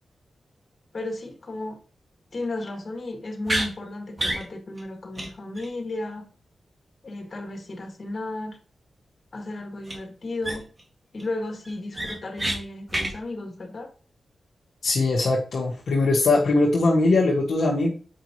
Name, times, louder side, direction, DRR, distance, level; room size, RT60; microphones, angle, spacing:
voice 1, 0.9-1.8 2.3-6.3 7.0-8.6 9.3-10.7 11.1-13.9, left 2 dB, 50° left, 3 dB, 2.0 m, -34 dB
sound 1, 3.4-3.7 4.2-4.4 4.8-4.9 5.2-5.3 5.6-5.7 9.8-10.0 10.4-10.8 11.2-11.3 11.6-12.6 12.9-13.1, right 1 dB, 30° right, 2.1 m, -28 dB
voice 2, 14.8-17.9, left 2 dB, 75° left, -3 dB, 1.3 m, -21 dB
7.8 x 5.2 x 3.0 m, 0.38 s
cardioid pair, 65°, 0 cm